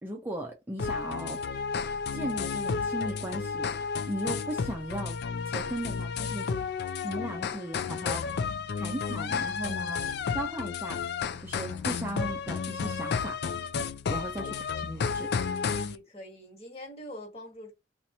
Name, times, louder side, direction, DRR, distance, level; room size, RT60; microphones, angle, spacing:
voice 1, 0.0-1.4 2.1-3.7 4.1-5.2 5.5-6.5 7.0-8.3 8.8-11.0 11.4-13.4 14.1-14.5 14.8-15.3, right 1 dB, 10° right, 0.5 m, -37 dB
sound 1, 0.8-16.0, left 5 dB, 60° left, 0.4 m, -32 dB
voice 2, 15.8-17.7, left 1 dB, 35° left, 1.6 m, -44 dB
2.8 x 2.5 x 4.2 m
head